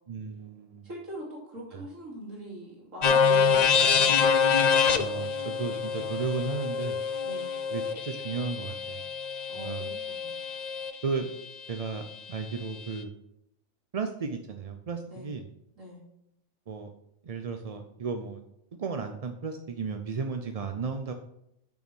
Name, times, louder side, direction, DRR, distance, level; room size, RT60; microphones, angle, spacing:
voice 1, 0.1-0.9 1.7-1.8 5.0-7.0 7.7-9.0 9.5-9.9 11.0-11.3 11.7-13.1 13.9-15.5 16.7-16.9 17.2-18.4 18.8-21.1, right 5 dB, 45° right, 6 dB, 0.4 m, -34 dB
voice 2, 0.8-4.2 7.2-7.6 9.5-10.4 15.1-15.3 15.8-16.0, equal, 75° right, -2 dB, 3.0 m, -41 dB
sound 1, 3.0-10.9, left 6 dB, 50° left, 0.5 m, -26 dB
7.1 x 6.3 x 6.1 m, 0.78 s
omnidirectional pair, 1.4 m